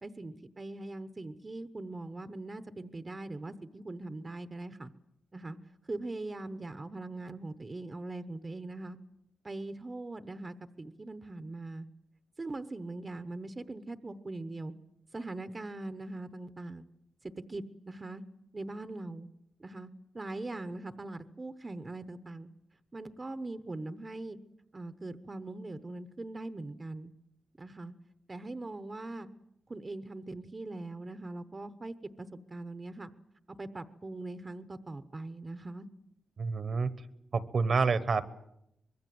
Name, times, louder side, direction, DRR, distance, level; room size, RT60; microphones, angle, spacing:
voice 1, 0.0-4.9 5.3-5.6 5.9-9.0 9.4-11.9 12.4-14.7 15.1-16.8 17.2-18.2 18.5-19.3 19.6-19.9 20.1-22.5 22.9-24.4 24.7-27.1 27.6-27.9 28.3-29.3 29.7-33.1 33.5-35.9, right 2 dB, 25° right, 11 dB, 0.9 m, -41 dB
voice 2, 36.4-36.9 37.3-38.3, right 4 dB, 50° right, 14 dB, 1.2 m, -28 dB
25.0 x 21.5 x 7.7 m, 0.80 s
wide cardioid pair, 125°, 0 cm